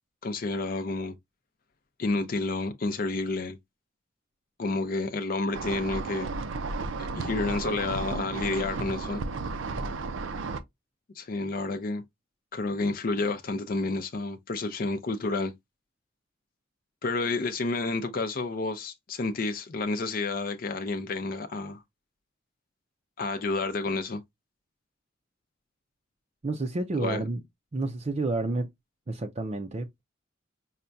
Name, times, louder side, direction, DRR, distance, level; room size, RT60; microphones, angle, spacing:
voice 1, 0.2-1.2 2.0-3.6 4.6-6.3 7.1-9.2 11.2-12.0 12.5-15.5 17.0-21.8 23.2-24.2 27.0-27.2, left 3 dB, 50° left, 0.5 m, -30 dB
sound 1, 5.5-10.6, right 3 dB, 85° right, 0.5 m, -33 dB
voice 2, 26.4-27.4 27.7-28.7 29.1-30.0, right 2 dB, 35° right, 0.5 m, -30 dB
5.6 x 2.2 x 2.5 m
head